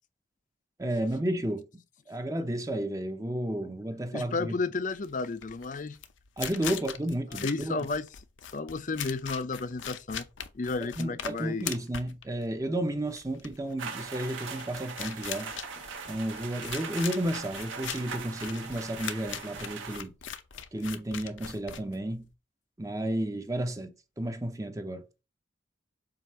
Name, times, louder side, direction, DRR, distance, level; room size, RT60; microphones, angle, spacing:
voice 1, 0.8-1.8 2.1-4.5 6.4-7.9 10.8-15.5 16.1-20.1 20.7-22.3 22.8-25.0, right 1 dB, 15° right, 0.6 m, -32 dB
voice 2, 4.1-6.0 7.4-8.1 8.5-10.3 10.5-11.7, left 3 dB, 40° left, 0.5 m, -32 dB
sound 1, 4.9-22.3, left 9 dB, 75° left, 0.7 m, -41 dB
sound 2, 13.8-20.0, right 5 dB, 80° right, 1.4 m, -40 dB
7.7 x 2.6 x 5.6 m
head